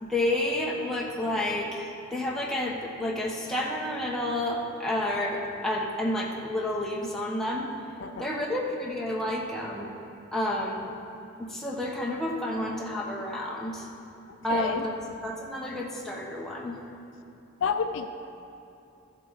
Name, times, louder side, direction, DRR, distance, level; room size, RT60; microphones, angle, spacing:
voice 1, 0.0-7.7 8.2-9.9 10.3-10.9 11.4-13.9 14.4-14.9 15.2-16.8, left 1 dB, ahead, -3 dB, 0.9 m, -30 dB
voice 2, 14.5-14.8 17.6-18.1, left 6 dB, 65° left, 8 dB, 0.4 m, -29 dB
13.5 x 7.6 x 4.0 m, 2.7 s
head